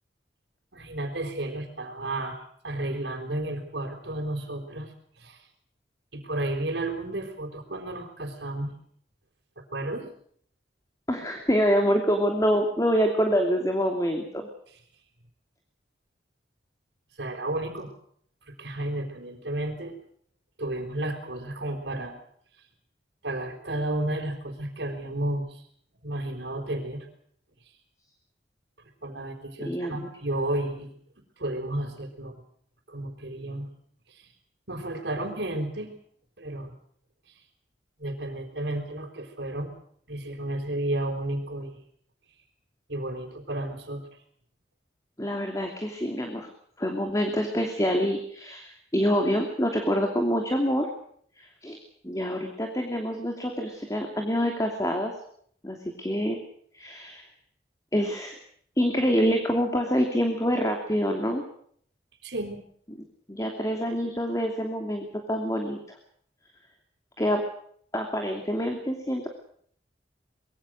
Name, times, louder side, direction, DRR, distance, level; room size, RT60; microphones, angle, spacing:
voice 1, 0.7-2.4 2.6-4.9 5.2-5.4 6.1-8.7 9.6-10.1 17.2-17.9 18.6-20.0 20.6-22.1 23.2-25.6 26.0-27.0 29.0-30.9 31.4-32.3 32.9-33.7 34.1-34.3 34.7-35.9 36.4-36.7 38.0-39.7 40.1-41.8 42.9-44.0 62.2-62.6, right 1 dB, 75° right, 0 dB, 4.5 m, -32 dB
voice 2, 11.1-14.5 29.7-30.1 45.2-46.5 46.8-50.9 51.4-51.8 52.0-55.1 55.6-56.4 56.7-57.2 57.9-58.4 58.8-61.4 63.3-65.8 67.2-67.4 67.9-69.3, equal, 20° left, 3 dB, 2.9 m, -26 dB
25.0 x 22.0 x 6.5 m, 0.63 s
head